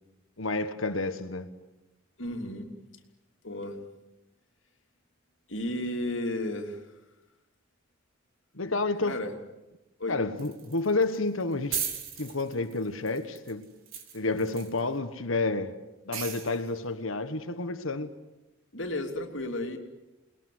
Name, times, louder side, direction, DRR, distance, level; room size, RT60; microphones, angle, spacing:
voice 1, 0.4-1.5 8.5-9.2 10.1-11.8 12.2-13.7 14.1-15.8 16.0-18.1, left 3 dB, 85° left, 1.5 m, -30 dB
voice 2, 2.2-2.7 3.4-3.8 5.5-6.9 9.0-9.3 10.0-10.2 18.7-19.8, left 1 dB, 65° left, 3.3 m, -33 dB
sound 1, 10.4-11.2 11.4-11.5 11.7-14.8 16.1-16.7, right 8 dB, 85° right, 4.1 m, -36 dB
29.0 x 21.0 x 9.5 m
head